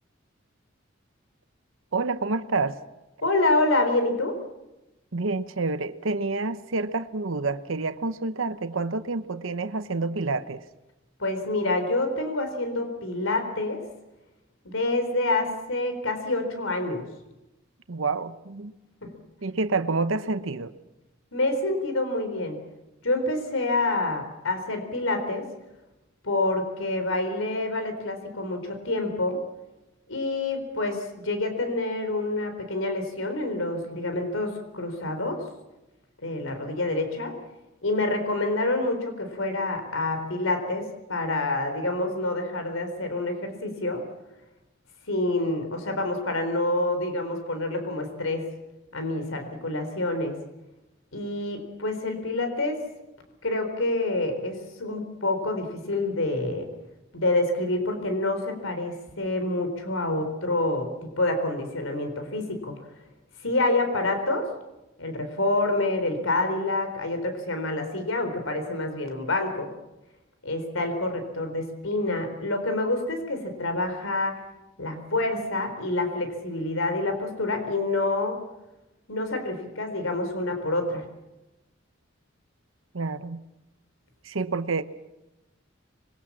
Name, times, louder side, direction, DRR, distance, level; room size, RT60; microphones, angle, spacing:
voice 1, 1.9-2.8 5.1-10.6 17.9-18.7 19.4-20.7 82.9-83.4 84.2-84.8, right 3 dB, 75° right, 11 dB, 0.9 m, -28 dB
voice 2, 3.2-4.4 11.2-13.8 14.6-17.0 19.0-19.1 21.3-22.6 23.0-25.4 26.2-29.4 30.1-35.4 36.2-37.3 37.8-44.0 45.1-48.5 48.9-50.4 51.1-52.8 53.4-56.7 57.1-62.7 63.4-64.5 65.0-69.7 70.4-74.4 74.8-78.4 79.1-81.0, left 2 dB, 85° left, 6 dB, 4.1 m, -27 dB
26.0 x 22.0 x 7.4 m, 1.0 s
head